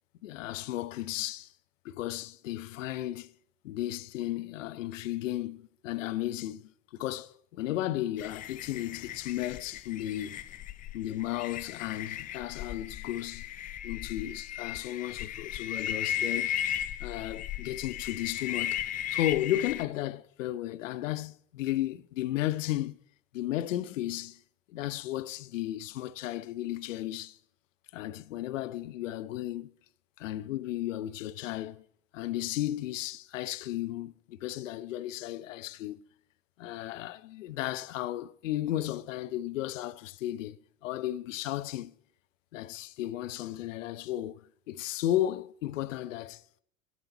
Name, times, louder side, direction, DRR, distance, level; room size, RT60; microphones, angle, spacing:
voice 1, 0.2-1.5 1.8-3.3 3.6-10.4 10.9-13.5 13.8-16.5 17.0-18.8 19.1-23.0 23.3-24.4 24.7-27.4 27.9-29.7 30.2-31.8 32.1-36.0 36.6-41.9 42.5-46.4, left 14 dB, 75° left, 0.5 m, -34 dB
sound 1, 8.2-19.9, left 11 dB, 25° left, 0.4 m, -36 dB
13.5 x 8.1 x 4.4 m
hypercardioid pair, 85°, 38 cm